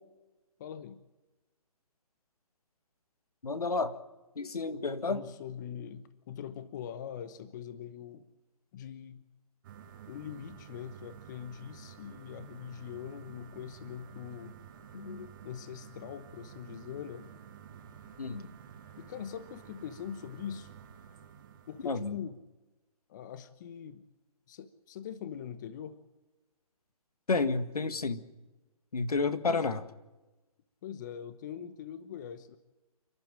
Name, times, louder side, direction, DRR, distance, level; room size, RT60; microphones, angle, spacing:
voice 1, 0.6-1.0 5.1-8.3 8.7-9.2 10.1-14.6 15.4-17.3 19.0-20.7 21.7-22.4 23.1-24.0 24.5-26.0 29.4-29.8 30.8-32.6, left 9 dB, 30° left, 13 dB, 1.0 m, -42 dB
voice 2, 3.4-4.0 4.4-5.2 14.9-15.3 18.2-18.5 21.9-22.2 27.3-28.2 28.9-29.8, left 3 dB, 80° left, 11 dB, 1.9 m, -31 dB
sound 1, 9.6-22.1, right 8 dB, 35° right, 1.8 m, -51 dB
29.0 x 12.0 x 8.9 m, 1.1 s
hypercardioid pair, 155°, 19 cm